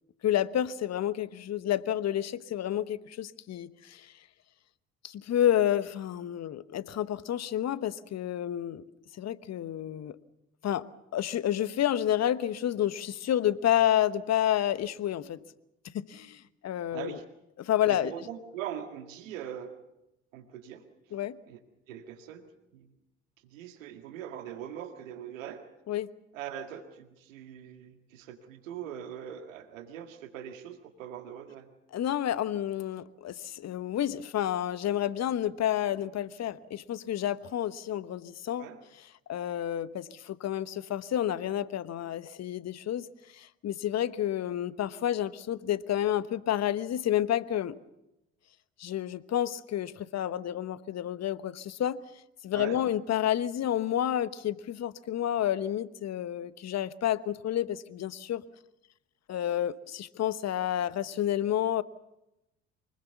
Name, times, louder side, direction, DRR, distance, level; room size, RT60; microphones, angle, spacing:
voice 1, 0.2-4.1 5.0-8.8 9.2-10.2 10.6-10.8 11.1-15.4 15.9-17.2 17.6-18.1 21.1-21.4 25.9-26.1 31.9-38.7 39.3-43.1 43.3-47.8 48.8-52.0 52.4-58.4 59.3-61.8, left 11 dB, 40° left, 17 dB, 1.1 m, -30 dB
voice 2, 16.9-17.2 17.9-19.8 20.3-20.8 21.5-21.6 21.9-22.5 22.7-22.9 23.4-25.7 26.3-31.7 38.6-38.8 52.5-52.8, right 9 dB, 75° right, 7 dB, 2.0 m, -41 dB
24.5 x 21.0 x 7.0 m, 0.89 s
figure-of-eight pair, 55°, 39 cm